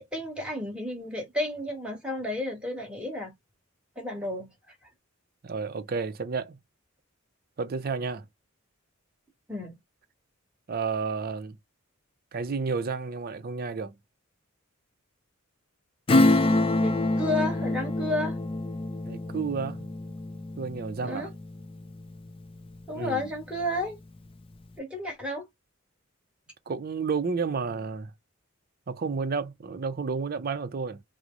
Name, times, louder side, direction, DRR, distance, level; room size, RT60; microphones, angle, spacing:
voice 1, 0.0-3.3 4.0-4.5 9.5-9.8 16.8-18.4 21.0-21.3 22.9-24.0 24.8-25.4, left 1 dB, 5° right, 1.3 m, -32 dB
voice 2, 5.4-6.6 7.6-8.2 10.7-11.6 12.3-14.0 19.1-19.9 20.6-21.3 22.9-23.3 26.7-28.1 28.9-31.0, right 5 dB, 45° right, 0.5 m, -31 dB
Acoustic guitar / Strum, 16.1-22.3 22.7-22.8, left 2 dB, 25° left, 0.3 m, -26 dB
3.1 x 2.0 x 3.7 m
head